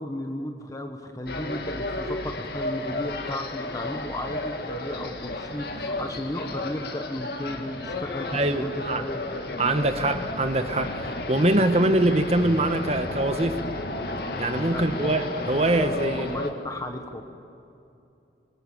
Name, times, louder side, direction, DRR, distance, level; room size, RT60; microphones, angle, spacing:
voice 1, 0.0-9.4 14.7-15.1 16.2-17.2, left 1 dB, 20° left, 5 dB, 1.3 m, -34 dB
sound 1, 1.3-16.5, left 2 dB, 60° left, 1.9 m, -33 dB
voice 2, 8.3-9.0 9.6-13.6 14.4-16.4, right 1 dB, 35° right, 8 dB, 1.2 m, -23 dB
24.5 x 23.5 x 7.4 m, 2.7 s
head